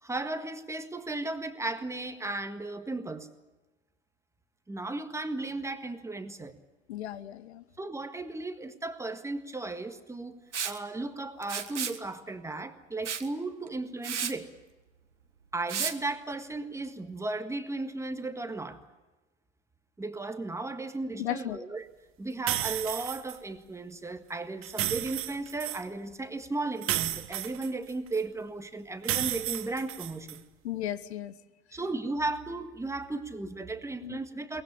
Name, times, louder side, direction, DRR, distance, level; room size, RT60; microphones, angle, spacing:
voice 1, 0.0-3.3 4.7-6.5 7.8-10.4 10.6-14.5 15.5-18.8 20.0-21.9 22.2-30.4 31.7-34.6, right 2 dB, 10° right, 8 dB, 1.6 m, -35 dB
voice 2, 6.9-7.6 21.2-21.6 30.6-31.3 34.0-34.2, left 12 dB, 65° left, 16 dB, 1.1 m, -35 dB
Liquid, 10.5-10.8 11.4-12.0 13.0-13.3 13.7-13.8 14.0-14.3 15.7-15.9, right 7 dB, 85° right, 1.4 m, -32 dB
sound 1, 22.5-23.4 24.6-25.8 26.8-28.2 29.0-30.4, right 14 dB, 35° right, 1.3 m, -32 dB
22.5 x 19.0 x 9.9 m, 1.2 s
hypercardioid pair, 85°, 35 cm